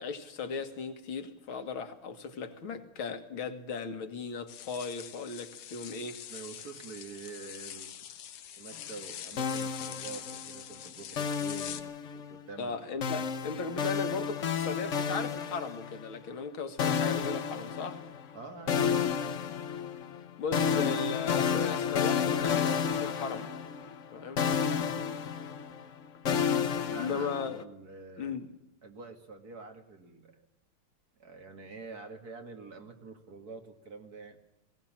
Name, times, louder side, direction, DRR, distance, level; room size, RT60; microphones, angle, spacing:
voice 1, 0.0-6.2 12.6-18.0 20.4-23.5 24.1-24.5 26.9-27.6 28.2-28.5, left 5 dB, 70° left, 2.6 m, -37 dB
sound 1, 4.5-11.8, left 10 dB, 85° left, 2.0 m, -44 dB
voice 2, 6.3-7.9 8.6-13.1 18.3-19.1 26.8-28.4 28.8-30.4 31.2-34.4, right 4 dB, 45° right, 2.4 m, -47 dB
sound 2, 9.4-10.6 11.2-12.4 13.0-16.1 16.8-18.3 18.7-24.1 24.4-27.6, left 7 dB, 50° left, 0.9 m, -31 dB
20.0 x 17.5 x 7.4 m
omnidirectional pair, 2.4 m